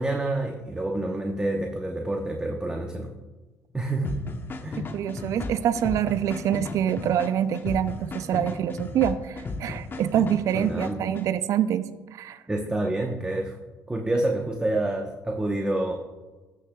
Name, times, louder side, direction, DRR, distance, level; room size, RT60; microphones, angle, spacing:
voice 1, 0.0-3.1 3.7-4.3 4.6-4.8 10.5-11.1 12.5-13.6 13.9-15.9, right 2 dB, 15° right, 1 dB, 0.9 m, -28 dB
sound 1, 4.0-11.3, left 3 dB, 35° left, 0.9 m, -35 dB
voice 2, 4.8-12.4, right 10 dB, 60° right, 13 dB, 0.4 m, -26 dB
13.5 x 6.5 x 2.3 m, 1.2 s
supercardioid pair, 75°, 6 cm